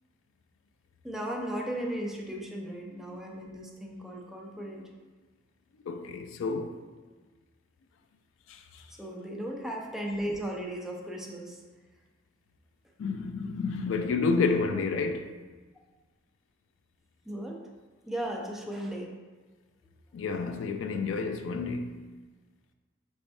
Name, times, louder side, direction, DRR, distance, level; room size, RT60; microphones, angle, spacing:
voice 1, 1.0-4.9 9.0-11.6 17.3-17.6 18.1-19.1, right 1 dB, ahead, 0.5 m, -36 dB
voice 2, 5.8-6.8 8.5-8.8 13.0-15.4 20.1-22.1, left 4 dB, 85° left, 0.3 m, -30 dB
5.2 x 3.2 x 2.6 m
head